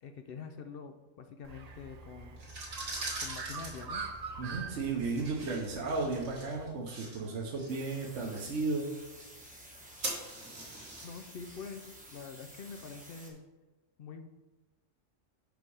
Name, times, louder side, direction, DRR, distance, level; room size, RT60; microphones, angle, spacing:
voice 1, 0.0-2.4 3.2-4.0 8.3-8.5 11.0-13.4 14.0-14.3, left 5 dB, 60° left, 7 dB, 0.6 m, -46 dB
Bird, 1.4-6.6, right 4 dB, 50° right, 0.5 m, -44 dB
sound 1, 2.3-13.2, right 2 dB, 85° right, 2.1 m, -45 dB
voice 2, 4.4-8.9, right 3 dB, 65° right, -1 dB, 1.1 m, -34 dB
sound 2, 7.7-13.3, right 1 dB, 5° right, 1.0 m, -52 dB
5.9 x 5.1 x 4.8 m, 1.1 s
omnidirectional pair, 1.3 m